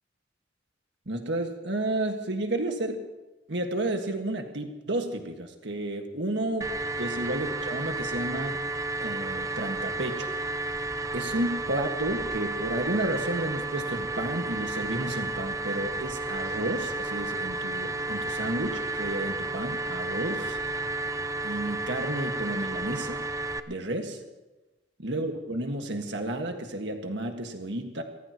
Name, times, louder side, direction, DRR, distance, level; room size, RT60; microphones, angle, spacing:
voice 1, 1.1-3.0 3.5-6.7 7.0-8.6 9.0-10.3 11.1-20.6 21.4-23.2 23.7-24.2 25.0-28.0, right 1 dB, 65° right, 4 dB, 1.8 m, -31 dB
sound 1, 6.6-23.6, right 2 dB, 15° right, 0.5 m, -32 dB
28.0 x 14.5 x 3.0 m, 1.1 s
head